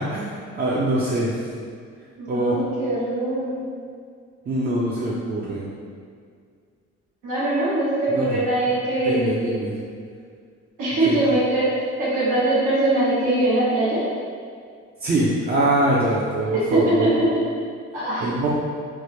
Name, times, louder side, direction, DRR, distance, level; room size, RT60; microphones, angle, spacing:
voice 1, 0.0-1.3 2.3-2.6 4.5-5.7 8.1-8.4 9.0-9.7 11.0-11.2 15.0-17.1 18.2-18.5, right 1 dB, 35° right, -7 dB, 0.5 m, -23 dB
voice 2, 2.2-3.6 7.2-9.3 10.8-11.7 12.0-14.0 16.5-17.2 17.9-18.3, right 2 dB, 90° right, -9 dB, 1.2 m, -22 dB
3.2 x 2.0 x 3.1 m, 2.1 s
cardioid pair, 90°, 30 cm